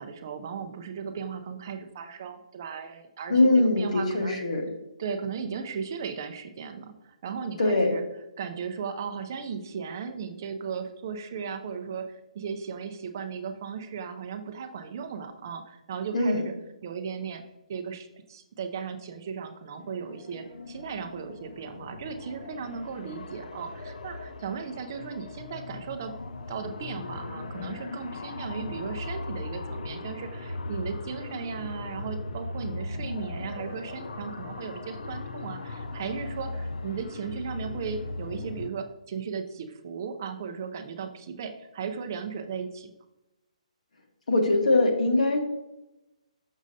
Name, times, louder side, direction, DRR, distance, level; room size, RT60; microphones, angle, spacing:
voice 1, 0.0-4.4 5.0-8.0 8.4-16.5 16.8-17.4 17.7-26.2 26.5-42.9, right 6 dB, 30° right, 7 dB, 0.4 m, -36 dB
voice 2, 3.3-4.7 7.6-7.9 16.1-16.4 44.3-45.4, left 2 dB, 70° left, 2 dB, 1.4 m, -22 dB
sound 1, 19.8-38.7, left 2 dB, 85° left, 0.5 m, -38 dB
6.2 x 6.2 x 2.7 m, 0.95 s
hypercardioid pair, 175°, 4 cm